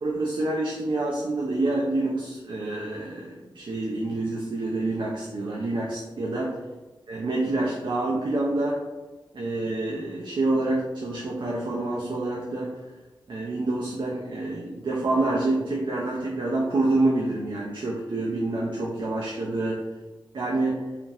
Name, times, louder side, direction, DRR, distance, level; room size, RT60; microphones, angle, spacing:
voice 1, 0.0-6.6 7.1-8.8 9.3-12.7 13.3-19.8 20.3-20.8, right 2 dB, 65° right, -4 dB, 0.5 m, -27 dB
2.8 x 2.5 x 2.6 m, 1.2 s
cardioid pair, 50°, 9 cm